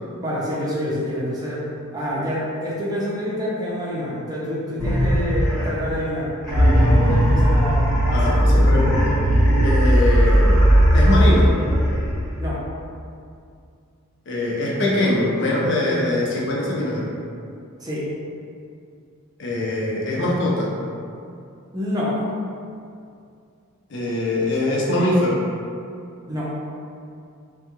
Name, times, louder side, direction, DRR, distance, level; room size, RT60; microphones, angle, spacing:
voice 1, 0.2-1.6 1.9-8.8 12.4-12.6 17.8-18.0 21.7-22.2 26.3-26.5, equal, 20° right, -7 dB, 0.6 m, -27 dB
sound 1, 4.8-5.9 6.4-12.4, equal, 5° left, 1.0 m, -17 dB
voice 2, 8.1-9.1 9.6-10.6 10.9-11.5 14.3-17.1 19.4-20.7 23.9-25.4, left 1 dB, 55° left, -4 dB, 0.5 m, -22 dB
3.5 x 2.3 x 2.9 m, 2.4 s
head